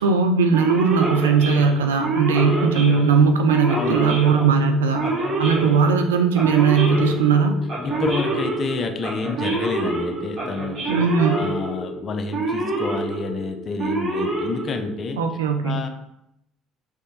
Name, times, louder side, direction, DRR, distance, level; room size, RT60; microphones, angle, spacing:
voice 1, 0.0-5.1 5.4-7.6 10.9-11.4 15.2-15.8, right 5 dB, 90° right, 5 dB, 0.3 m, -19 dB
Male speech man speaking / Siren, 0.5-15.2, right 2 dB, 45° right, 1.3 m, -27 dB
voice 2, 3.7-4.5 7.8-10.8 11.2-15.2 15.6-15.9, left 4 dB, 45° left, 6 dB, 0.5 m, -29 dB
3.5 x 3.3 x 2.7 m, 0.81 s
hypercardioid pair, 65°, 0 cm